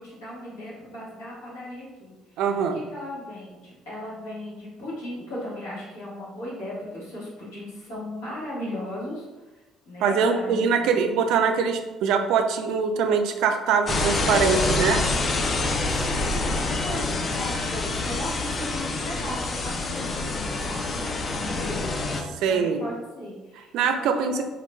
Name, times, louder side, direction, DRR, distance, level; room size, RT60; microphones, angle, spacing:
voice 1, 0.0-10.9 15.6-22.0 22.4-24.4, left 1 dB, 80° left, -8 dB, 1.5 m, -37 dB
voice 2, 2.4-2.8 10.0-15.0 22.4-22.8 23.7-24.4, right 6 dB, 70° right, 6 dB, 0.3 m, -23 dB
sound 1, 13.9-22.2, left 3 dB, 45° left, 0.4 m, -26 dB
3.7 x 2.9 x 2.2 m, 1.1 s
hypercardioid pair, 55°, 0 cm